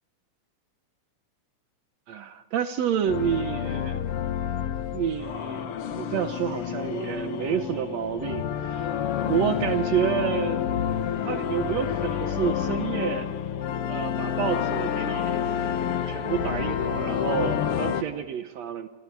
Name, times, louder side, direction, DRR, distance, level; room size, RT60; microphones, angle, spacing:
voice 1, 2.1-4.2 4.9-10.6 11.2-13.3 13.9-15.4 15.8-18.9, right 9 dB, 70° right, 9 dB, 1.8 m, -29 dB
sound 1, 3.1-18.0, left 9 dB, 70° left, 1.4 m, -29 dB
27.5 x 27.0 x 4.7 m, 1.2 s
omnidirectional pair, 3.9 m